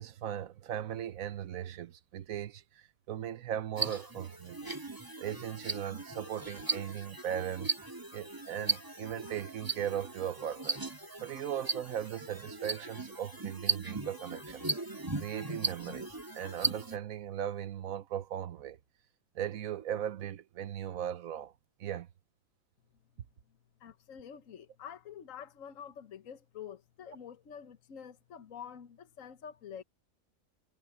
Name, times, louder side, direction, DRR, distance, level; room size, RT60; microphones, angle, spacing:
voice 1, 0.0-4.8 5.2-7.7 8.1-10.8 11.2-14.7 15.2-18.8 19.3-21.5 21.8-22.1, right 10 dB, 80° right, 1.3 m, -38 dB
sound 1, 3.8-17.0, right 3 dB, 15° right, 2.3 m, -37 dB
voice 2, 23.8-29.8, left 8 dB, 70° left, 1.4 m, -47 dB
omnidirectional pair, 1.4 m